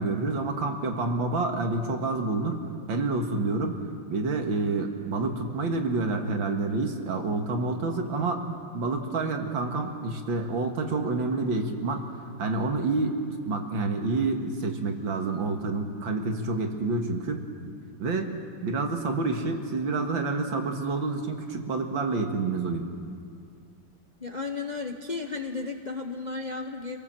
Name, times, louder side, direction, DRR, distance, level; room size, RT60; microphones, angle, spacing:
voice 1, 0.0-2.6 2.9-3.8 4.1-8.5 8.7-12.0 12.4-17.4 18.0-18.3 18.6-22.9, right 3 dB, 75° right, 4 dB, 2.5 m, -28 dB
voice 2, 24.2-27.0, left 4 dB, 35° left, 4 dB, 0.7 m, -34 dB
26.5 x 18.5 x 7.5 m, 2.3 s
omnidirectional pair, 2.1 m